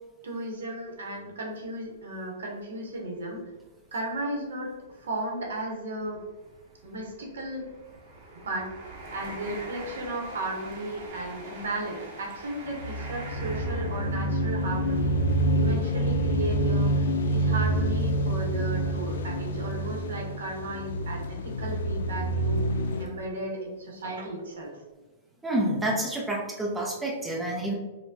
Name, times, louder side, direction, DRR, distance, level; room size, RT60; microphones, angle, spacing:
voice 1, 0.2-3.4 3.9-4.7 5.0-6.2 6.8-7.6 8.4-8.7 9.1-15.1 15.5-22.6 23.0-24.7, right 1 dB, 85° right, 0 dB, 0.9 m, -35 dB
sound 1, 1.6-1.7 2.2-2.3 3.5-3.6 3.8-4.0 4.7-17.4 18.0-18.2, right 2 dB, 45° right, 0.8 m, -45 dB
sound 2, 12.8-23.1, right 1 dB, 75° left, 0.4 m, -27 dB
voice 2, 25.4-27.7, right 1 dB, 10° right, -3 dB, 0.7 m, -28 dB
4.3 x 2.2 x 2.7 m, 1.2 s
hypercardioid pair, 140°, 0 cm